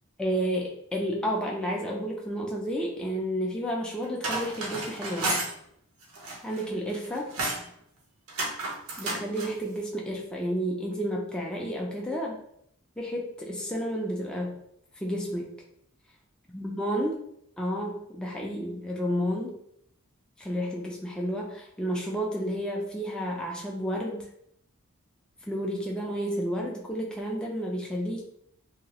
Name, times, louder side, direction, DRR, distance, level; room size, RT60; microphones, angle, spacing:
voice 1, 0.2-5.4 6.4-7.3 9.0-12.4 13.0-14.6 15.0-15.5 16.5-17.2 17.6-19.5 20.4-24.3 25.5-28.3, equal, 5° left, -2 dB, 0.3 m, -31 dB
sound 1, 4.0-5.5 6.0-6.7 6.9-7.7 8.3-9.5, right 2 dB, 75° right, 0.7 m, -32 dB
2.8 x 2.3 x 2.9 m, 0.72 s
head